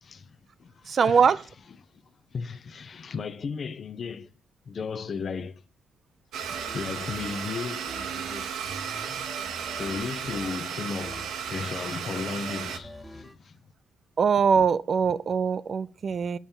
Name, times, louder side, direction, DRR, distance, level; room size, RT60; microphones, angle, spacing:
voice 1, 0.0-1.2 2.3-4.3 4.7-5.6 6.5-8.5 9.8-13.6, left 5 dB, 50° left, 0.6 m, -35 dB
voice 2, 0.9-1.4 14.2-16.4, right 6 dB, 50° right, 0.5 m, -22 dB
Domestic sounds home sounds, 6.3-12.8, right 7 dB, 80° right, 1.0 m, -34 dB
sound 1, 6.4-13.4, equal, 5° left, 1.0 m, -46 dB
7.3 x 5.4 x 7.1 m
supercardioid pair, 65°, 0 cm